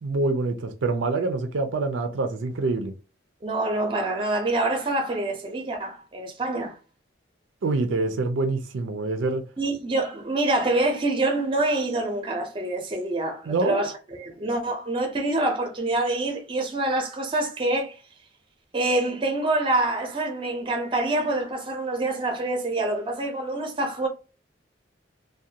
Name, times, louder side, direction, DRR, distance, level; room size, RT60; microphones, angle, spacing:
voice 1, 0.0-2.9 7.6-9.4 13.5-13.8, right 3 dB, 85° right, 0.4 m, -26 dB
voice 2, 3.4-6.8 9.6-13.9 14.2-18.0 18.7-24.1, right 2 dB, 25° right, 0.6 m, -26 dB
2.4 x 2.2 x 2.7 m
head